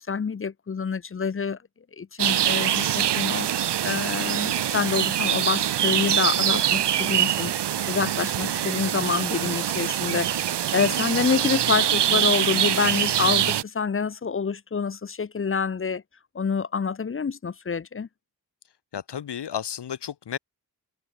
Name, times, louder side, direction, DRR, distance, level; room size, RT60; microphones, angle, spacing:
voice 1, 0.0-1.6 2.0-7.5 7.9-10.4 10.7-16.0 16.3-18.1, left 5 dB, 35° left, 0.6 m, -27 dB
sound 1, 2.2-13.6, right 10 dB, 85° right, 0.7 m, -24 dB
voice 2, 18.9-20.4, left 9 dB, 90° left, 1.2 m, -33 dB
cardioid pair, 45°, 40 cm